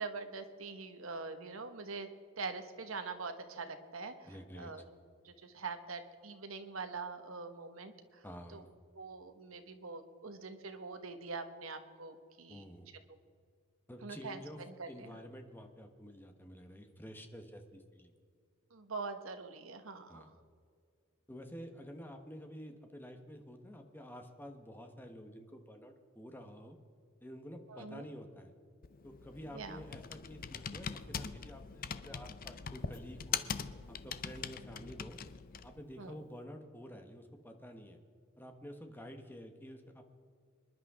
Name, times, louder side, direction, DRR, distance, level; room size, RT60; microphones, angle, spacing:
voice 1, 0.0-2.1 2.4-4.3 4.5-4.9 5.2-8.2 8.5-8.6 8.9-12.6 14.0-15.2 18.7-20.3 27.7-28.0 29.5-29.8 36.0-36.2, right 4 dB, 80° right, 7 dB, 1.4 m, -44 dB
voice 2, 4.2-4.7 8.2-8.7 12.5-12.9 13.9-14.6 14.9-18.1 20.1-20.4 21.3-26.8 27.2-28.5 29.0-33.5 34.0-35.2 35.6-38.0 38.4-40.0, equal, 10° left, 5 dB, 1.3 m, -50 dB
Computer keyboard, 28.8-35.8, left 7 dB, 45° left, 0.6 m, -42 dB
26.0 x 11.0 x 3.7 m, 2.1 s
head